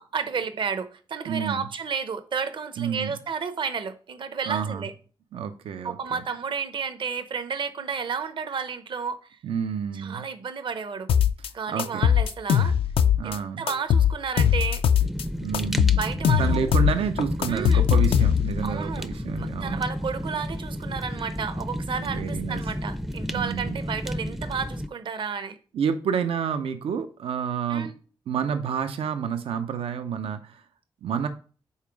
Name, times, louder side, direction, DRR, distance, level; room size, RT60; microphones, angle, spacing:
voice 1, 0.1-4.9 5.8-9.4 9.9-11.1 11.5-12.7 13.2-14.8 16.0-16.7 17.5-17.8 18.6-19.1 19.4-25.6 27.7-27.9, right 6 dB, 60° right, 0.8 m, -32 dB
voice 2, 1.3-1.7 2.8-3.2 4.5-4.9 5.3-6.2 9.4-10.2 11.7-12.0 13.2-13.6 15.4-16.1 16.4-19.8 22.0-22.6 23.3-23.8 25.7-27.9 28.3-30.6 31.0-31.3, right 7 dB, 90° right, 0.6 m, -29 dB
sound 1, 11.1-11.5 11.8-13.4 13.7-15.2 15.5-18.6, left 8 dB, 85° left, 0.4 m, -20 dB
Fire, 15.0-24.9, equal, 5° right, 0.4 m, -32 dB
5.7 x 4.2 x 4.6 m
cardioid pair, 100°, 9 cm